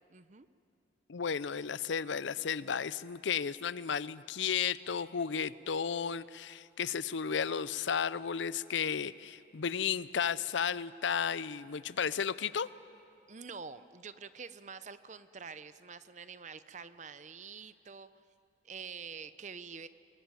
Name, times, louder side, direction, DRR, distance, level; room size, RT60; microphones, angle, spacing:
voice 1, 0.1-0.5 13.3-18.1 18.6-19.9, right 5 dB, 40° right, 13 dB, 0.7 m, -46 dB
voice 2, 1.1-12.7, left 7 dB, 75° left, 18 dB, 0.5 m, -33 dB
23.5 x 20.5 x 9.1 m, 2.6 s
head